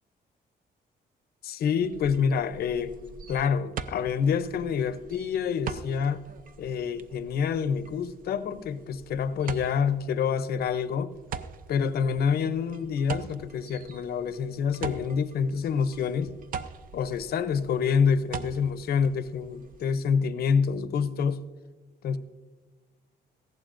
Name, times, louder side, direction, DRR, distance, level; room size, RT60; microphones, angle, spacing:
voice 1, 1.4-2.9 3.3-6.2 6.6-11.1 11.7-16.3 16.9-21.4 22.0-22.2, left 6 dB, 60° left, 12 dB, 0.6 m, -27 dB
sound 1, 1.8-20.0, right 6 dB, 50° right, 0.5 m, -43 dB
18.0 x 14.5 x 2.5 m, 1.3 s
cardioid pair, 145°, 18 cm